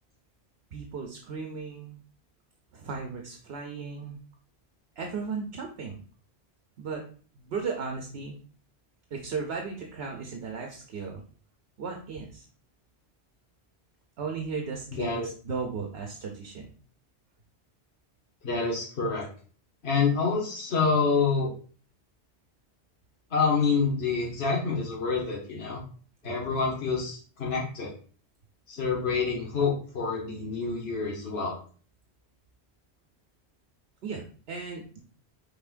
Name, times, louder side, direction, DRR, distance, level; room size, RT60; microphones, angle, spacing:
voice 1, 0.7-2.0 2.7-4.2 5.0-6.0 6.8-7.0 7.4-8.3 9.1-11.2 11.8-12.5 14.2-16.7 20.8-20.9 26.2-26.4 34.0-35.0, right 5 dB, 70° right, 2 dB, 0.9 m, -36 dB
voice 2, 14.9-15.3 18.4-19.3 19.8-21.5 23.3-25.8 26.2-27.9 28.7-31.6, left 4 dB, 70° left, -4 dB, 1.4 m, -27 dB
5.7 x 3.7 x 2.5 m, 0.42 s
omnidirectional pair, 1.1 m